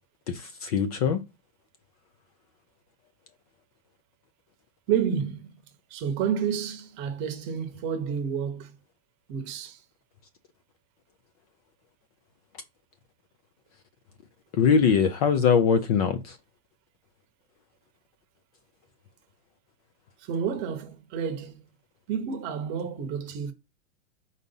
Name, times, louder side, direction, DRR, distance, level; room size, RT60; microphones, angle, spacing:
voice 1, 0.6-1.2 14.6-16.2, left 6 dB, 30° left, 0.4 m, -21 dB
voice 2, 4.9-5.5 5.9-8.7 9.3-9.8 20.2-21.6 22.1-23.5, right 7 dB, 30° right, 0.9 m, -30 dB
4.7 x 4.1 x 5.4 m
supercardioid pair, 165°, 38 cm